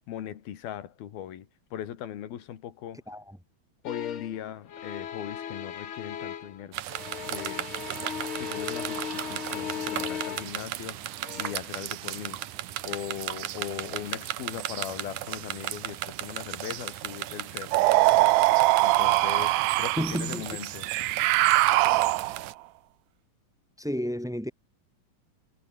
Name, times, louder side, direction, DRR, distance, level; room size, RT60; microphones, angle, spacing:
voice 1, 0.0-3.0 3.8-6.8 7.3-7.7 8.4-11.1 11.4-12.4 12.8-17.9 18.2-18.3 18.8-20.9, left 11 dB, 85° left, 3.9 m, -39 dB
sound 1, 3.8-4.4 4.7-6.6 6.9-10.7 11.2-11.5, left 9 dB, 55° left, 1.6 m, -37 dB
sound 2, 6.7-22.5, right 13 dB, 65° right, 2.3 m, -36 dB
sound 3, 17.7-20.2 20.8-22.5, right 19 dB, 85° right, 2.5 m, -22 dB
voice 2, 20.0-20.4 23.8-24.5, equal, 5° right, 0.7 m, -31 dB
omnidirectional pair, 4.2 m